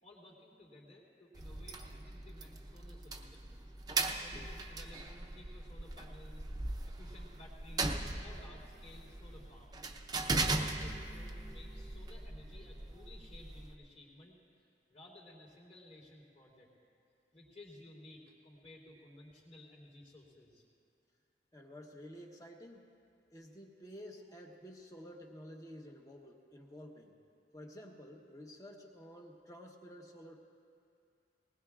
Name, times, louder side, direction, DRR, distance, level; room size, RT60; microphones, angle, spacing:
voice 1, 0.0-3.6 4.2-6.4 7.0-9.9 10.3-14.4 14.9-16.7 17.3-20.6, left 1 dB, 40° left, -5 dB, 3.2 m, -56 dB
sound 1, 1.3-13.8, right 2 dB, 20° right, 0.7 m, -39 dB
voice 2, 21.5-22.9 23.3-27.2 27.5-30.4, equal, 20° left, 1 dB, 1.1 m, -51 dB
20.0 x 20.0 x 2.5 m, 2.5 s
head